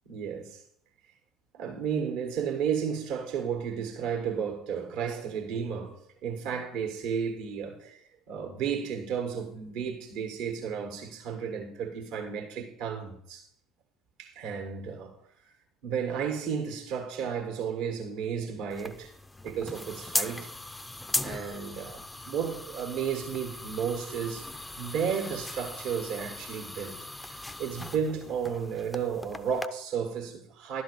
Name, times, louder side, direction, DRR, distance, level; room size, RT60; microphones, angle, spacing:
voice 1, 0.0-0.6 1.5-8.0 8.3-13.4 14.2-15.1 15.8-19.1 19.4-20.5 21.2-24.5 24.8-30.8, right 7 dB, 60° right, 1.7 m, -33 dB
sound 1, 18.7-29.7, left 2 dB, 10° left, 0.5 m, -38 dB
11.5 x 3.9 x 6.7 m
figure-of-eight pair, 60°, 0 cm